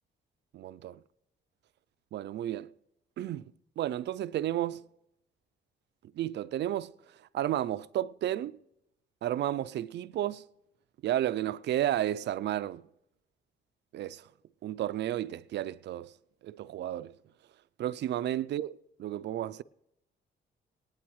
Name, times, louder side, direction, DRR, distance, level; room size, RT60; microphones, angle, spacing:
voice 1, 0.5-1.0 2.1-2.7 3.2-3.5 3.8-4.8 6.2-6.9 7.3-8.6 9.2-10.4 11.0-12.8 13.9-14.2 14.6-16.1 16.4-17.1 17.8-19.6, right 12 dB, 60° right, 0.4 m, -32 dB
19.5 x 10.0 x 3.1 m
cardioid pair, 90°, 20 cm